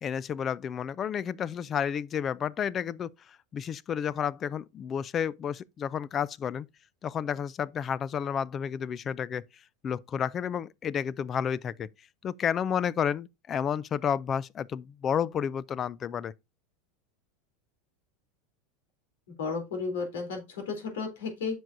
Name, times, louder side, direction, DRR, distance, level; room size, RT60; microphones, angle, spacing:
voice 1, 0.0-6.7 7.0-9.4 9.8-11.9 12.2-16.3, left 8 dB, 30° left, 0.4 m, -31 dB
voice 2, 19.4-21.6, left 4 dB, 90° left, 3.3 m, -33 dB
9.4 x 6.1 x 2.6 m
supercardioid pair, 140°, 0 cm